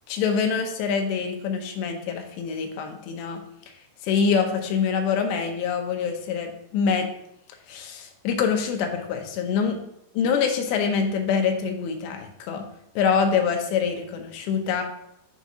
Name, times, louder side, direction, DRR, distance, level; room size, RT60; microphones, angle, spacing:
voice 1, 0.1-3.4 4.0-7.1 7.7-9.7 10.2-12.7 13.0-14.8, left 6 dB, 85° left, 4 dB, 3.0 m, -25 dB
7.1 x 4.2 x 4.8 m, 0.77 s
omnidirectional pair, 4.9 m